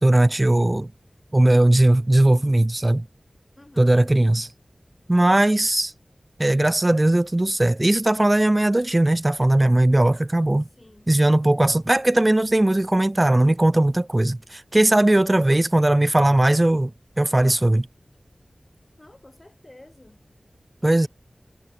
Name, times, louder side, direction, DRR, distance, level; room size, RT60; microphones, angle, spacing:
voice 1, 0.0-0.9 1.3-3.1 3.8-4.5 5.1-5.9 6.4-10.7 11.1-16.9 17.2-17.9 20.8-21.1, right 1 dB, 25° right, 0.4 m, -18 dB
voice 2, 3.6-4.0 10.8-11.1 19.0-20.2 20.8-21.1, left 1 dB, 30° left, 2.2 m, -50 dB
wide cardioid pair, 60°, 0 cm